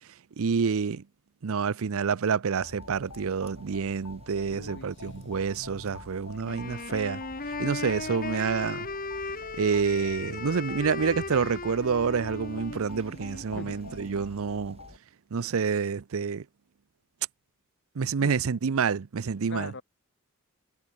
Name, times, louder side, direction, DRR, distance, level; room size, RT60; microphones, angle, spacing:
voice 1, 0.4-1.0 1.4-7.2 7.6-8.9 9.5-14.8 15.3-16.4 18.0-19.7, right 5 dB, 65° right, 0.5 m, -28 dB
sound 1, 2.6-15.0, left 3 dB, 90° left, 2.9 m, -47 dB
sound 2, 2.8-15.0, right 1 dB, 30° right, 3.7 m, -54 dB
voice 2, 4.5-5.2 13.5-13.8 18.2-18.4 19.5-19.8, left 3 dB, 55° left, 2.6 m, -41 dB
Wind instrument woodwind instrument, 6.4-14.3, left 3 dB, 40° left, 3.5 m, -37 dB
head